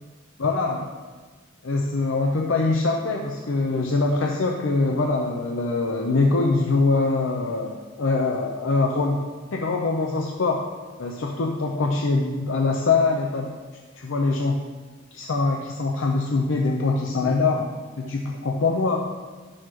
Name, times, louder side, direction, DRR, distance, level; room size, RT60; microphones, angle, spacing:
voice 1, 0.4-0.9 1.6-10.6 11.0-13.5 13.9-14.6 15.1-17.7 18.0-19.1, left 3 dB, 80° left, 1 dB, 0.6 m, -23 dB
10.5 x 6.4 x 3.2 m, 1.4 s
head